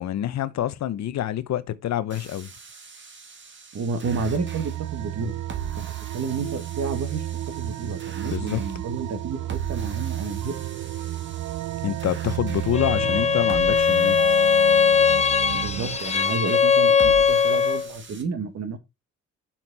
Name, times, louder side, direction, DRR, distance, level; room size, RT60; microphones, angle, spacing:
voice 1, 0.0-2.5 8.2-8.6 11.8-14.3, left 11 dB, 65° left, 0.8 m, -27 dB
sound 1, 2.1-18.2, right 6 dB, 40° right, 1.8 m, -42 dB
voice 2, 3.7-5.3 5.8-5.9 6.1-10.6 15.5-18.8, right 4 dB, 55° right, 1.7 m, -31 dB
sound 2, 4.0-16.0, right 14 dB, 75° right, 0.5 m, -32 dB
Bowed string instrument, 12.7-17.9, left 6 dB, 20° left, 0.7 m, -20 dB
6.2 x 5.7 x 4.0 m
cardioid pair, 90°, 30 cm